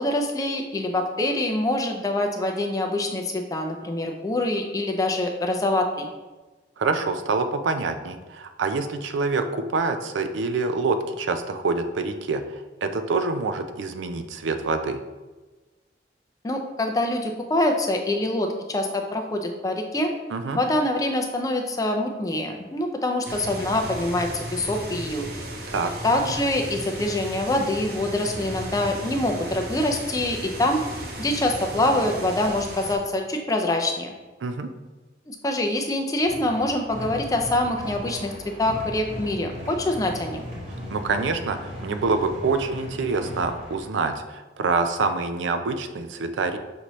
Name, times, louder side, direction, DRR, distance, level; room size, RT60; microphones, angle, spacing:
voice 1, 0.0-6.1 16.4-20.1 20.5-25.3 26.0-30.8 31.2-34.1 35.3-40.4, left 1 dB, 20° left, 3 dB, 0.4 m, -25 dB
voice 2, 6.8-12.4 12.8-15.0 20.3-20.6 25.7-25.9 34.4-34.7 40.9-46.6, right 4 dB, 85° right, 8 dB, 0.4 m, -26 dB
zoo morewaternoises, 23.2-33.0, right 1 dB, 55° right, 0.8 m, -35 dB
sound 1, 36.3-43.8, equal, 35° right, 1.3 m, -37 dB
5.9 x 2.7 x 3.1 m, 1.2 s
head